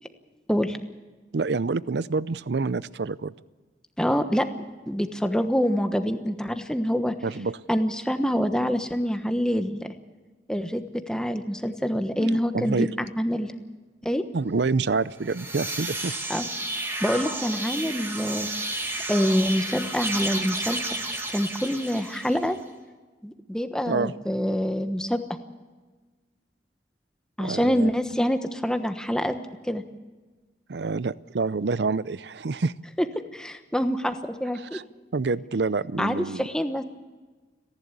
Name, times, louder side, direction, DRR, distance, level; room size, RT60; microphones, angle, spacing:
voice 1, 1.3-3.3 7.2-7.6 12.2-12.9 14.3-16.1 23.9-24.1 27.4-27.9 30.7-32.7 34.6-34.8 35.1-36.5, right 4 dB, 70° right, 18 dB, 0.6 m, -27 dB
voice 2, 4.0-4.5 4.9-7.1 7.7-9.9 10.5-13.5 14.0-14.2 16.3-16.5 17.0-18.5 19.1-20.8 21.3-22.6 23.2-25.2 27.4-29.3 29.7-29.8 33.0-33.1 33.3-34.8 36.0-36.8, equal, 5° left, 7 dB, 1.2 m, -26 dB
sound 1, 15.1-22.6, right 2 dB, 15° right, 2.3 m, -32 dB
29.5 x 11.5 x 8.3 m, 1.3 s
head